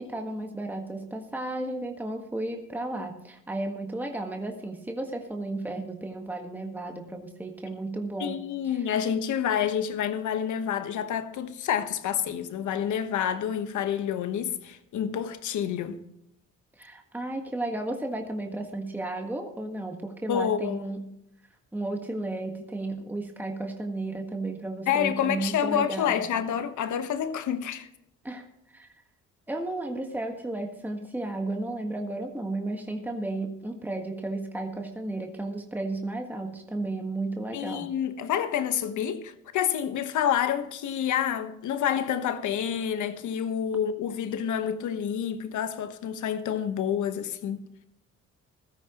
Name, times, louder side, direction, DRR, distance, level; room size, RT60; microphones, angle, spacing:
voice 1, 0.0-8.4 8.7-8.8 16.8-21.1 21.7-26.2 28.2-28.9 29.5-37.9, right 2 dB, 5° right, 1.6 m, -33 dB
voice 2, 8.2-16.0 20.3-20.8 24.9-27.9 37.5-47.6, left 9 dB, 75° left, 1.3 m, -28 dB
16.0 x 13.5 x 3.0 m
cardioid pair, 90°, 30 cm